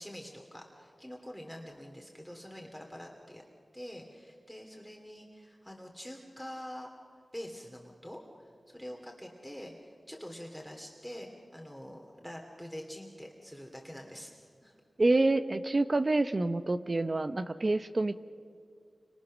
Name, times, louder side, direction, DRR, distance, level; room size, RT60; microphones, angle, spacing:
voice 1, 0.0-3.4 3.7-6.9 7.3-8.2 8.7-14.3 14.6-14.7, equal, ahead, 1 dB, 2.6 m, -45 dB
voice 2, 15.0-18.2, right 2 dB, 45° right, 10 dB, 0.8 m, -27 dB
29.0 x 25.5 x 6.4 m, 2.3 s
wide cardioid pair, 65°, 0 cm